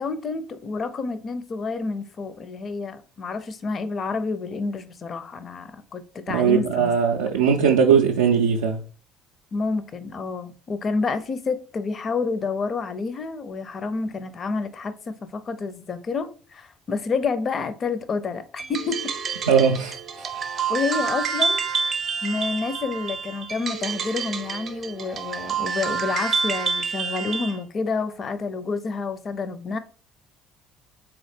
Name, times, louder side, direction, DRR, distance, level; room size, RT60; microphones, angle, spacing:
voice 1, 0.0-6.9 7.3-7.4 9.5-19.1 20.7-21.7 22.2-29.8, left 4 dB, 40° left, 0.5 m, -29 dB
voice 2, 6.3-8.8 19.5-20.3 20.6-20.7, right 7 dB, 75° right, 0.3 m, -20 dB
sound 1, 18.6-27.6, right 5 dB, 40° right, 0.6 m, -28 dB
3.9 x 3.0 x 3.3 m
figure-of-eight pair, 55°, 0 cm